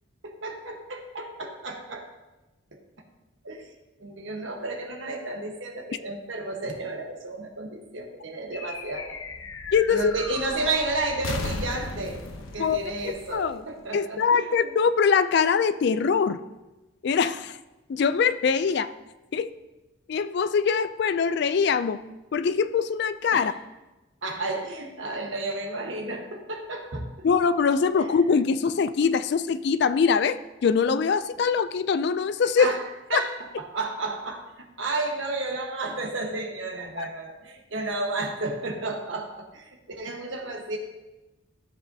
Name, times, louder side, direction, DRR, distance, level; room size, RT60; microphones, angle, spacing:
voice 1, 0.2-2.1 2.7-2.8 3.4-3.7 4.0-9.2 9.9-12.2 12.5-14.7 23.3-23.5 24.2-27.1 27.9-28.1 32.6-32.8 33.1-40.8, right 2 dB, 65° right, 3 dB, 1.2 m, -32 dB
sound 1, 8.5-14.2, left 2 dB, 80° left, 0.9 m, -36 dB
voice 2, 9.7-10.1 12.6-12.8 13.3-13.6 13.9-16.4 17.0-17.6 17.9-18.9 19.3-19.5 20.1-22.0 22.3-23.5 27.2-32.7 33.1-33.2 37.0-37.1, left 6 dB, 55° left, 14 dB, 0.3 m, -23 dB
12.5 x 7.3 x 2.7 m, 1.1 s
head